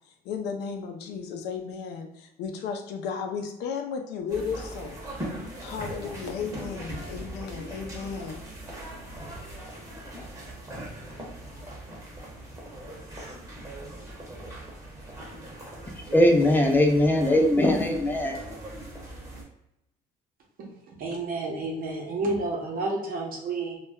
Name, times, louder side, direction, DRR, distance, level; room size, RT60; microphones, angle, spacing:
voice 1, 0.2-8.4, left 6 dB, 80° left, 0.5 m, -34 dB
sound 1, 4.3-19.4, right 1 dB, 20° right, 0.8 m, -40 dB
voice 2, 16.1-18.4, left 1 dB, 10° left, 0.4 m, -20 dB
voice 3, 20.6-23.8, right 2 dB, 55° right, 0.8 m, -30 dB
2.3 x 2.0 x 3.4 m
cardioid pair, 110°, 17 cm